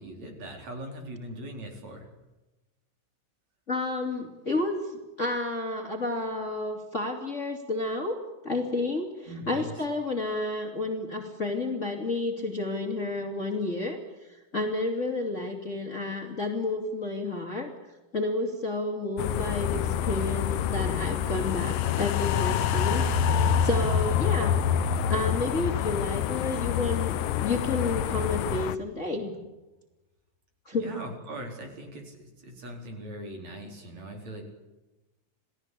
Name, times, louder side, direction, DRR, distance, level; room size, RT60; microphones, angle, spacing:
voice 1, 0.0-2.1 9.3-9.7 30.7-34.5, right 1 dB, 50° right, 3 dB, 5.5 m, -40 dB
voice 2, 3.7-8.2 8.4-17.7 18.1-24.6 25.1-29.3 30.6-30.9, left 2 dB, 20° left, 3 dB, 3.2 m, -31 dB
sound 1, 19.2-28.8, left 12 dB, 85° left, 2.7 m, -29 dB
sound 2, 21.3-27.7 28.1-28.2, left 6 dB, 60° left, 1.9 m, -28 dB
29.0 x 18.5 x 8.6 m, 1.1 s
omnidirectional pair, 4.0 m